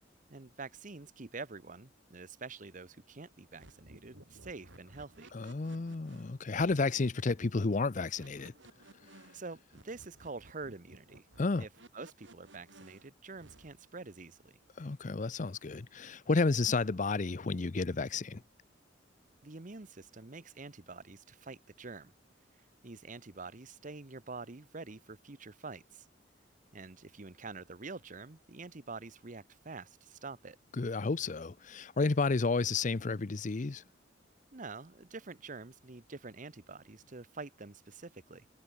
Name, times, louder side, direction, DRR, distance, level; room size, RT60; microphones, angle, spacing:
voice 1, 0.3-5.3 9.3-11.3 11.6-14.5 19.4-22.1 22.8-26.1 26.7-30.6 34.5-38.4, right 3 dB, 45° right, 1.0 m, -46 dB
sound 1, 3.5-13.9, right 1 dB, 80° right, 7.1 m, -58 dB
voice 2, 5.3-8.5 11.4-11.6 14.8-18.4 30.8-33.8, left 3 dB, 40° left, 0.6 m, -31 dB
head